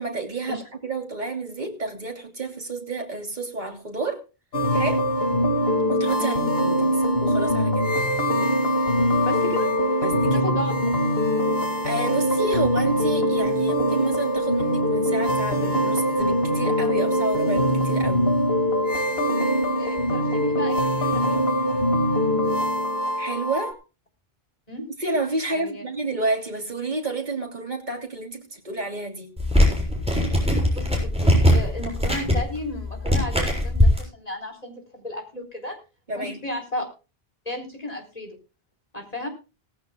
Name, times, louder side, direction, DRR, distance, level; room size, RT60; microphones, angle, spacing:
voice 1, 0.0-4.2 4.7-5.1 5.9-6.3 6.6-7.9 10.0-10.4 11.8-18.3 23.2-23.8 25.0-29.3 36.1-36.4, right 2 dB, 45° right, 3 dB, 3.3 m, -30 dB
sound 1, 4.5-23.7, equal, 65° left, 2.5 m, -22 dB
voice 2, 9.3-9.7 10.3-10.7 19.8-21.4 24.7-24.9 25.5-25.8 30.7-35.8 36.1-36.8 37.4-38.4 38.9-39.3, left 1 dB, 40° left, 4 dB, 4.3 m, -33 dB
sound 2, 29.4-34.0, equal, 5° right, 7.0 m, -20 dB
18.5 x 16.0 x 2.3 m, 0.32 s
omnidirectional pair, 1.1 m